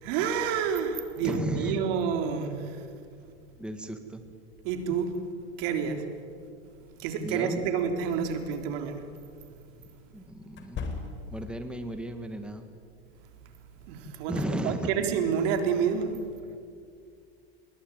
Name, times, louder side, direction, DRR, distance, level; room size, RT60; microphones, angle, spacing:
voice 1, 0.0-2.8 4.6-5.1 5.6-6.1 7.0-9.0 13.9-16.1, right 7 dB, 65° right, 6 dB, 3.9 m, -29 dB
voice 2, 1.2-1.8 3.6-4.2 7.2-7.6 10.1-10.9 11.3-12.7 14.3-14.9, right 1 dB, 5° right, 7 dB, 2.0 m, -35 dB
sound 1, 8.3-8.5 10.5-11.5, left 4 dB, 35° left, 4.5 m, -37 dB
26.5 x 22.0 x 9.3 m, 2.3 s
hypercardioid pair, 105°, 33 cm